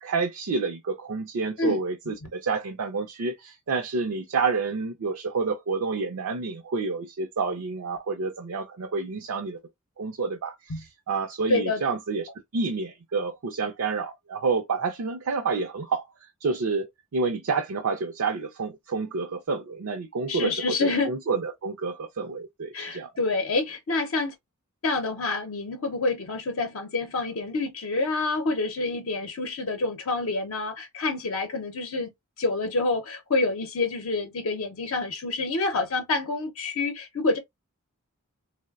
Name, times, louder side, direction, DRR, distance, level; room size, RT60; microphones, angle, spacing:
voice 1, 0.0-9.6 10.0-16.1 16.4-23.1, right 4 dB, 80° right, 0.5 m, -29 dB
voice 2, 11.5-11.8 20.3-21.1 22.7-24.3 24.8-32.1 32.4-37.4, left 3 dB, 70° left, 0.6 m, -27 dB
3.1 x 2.0 x 2.3 m
head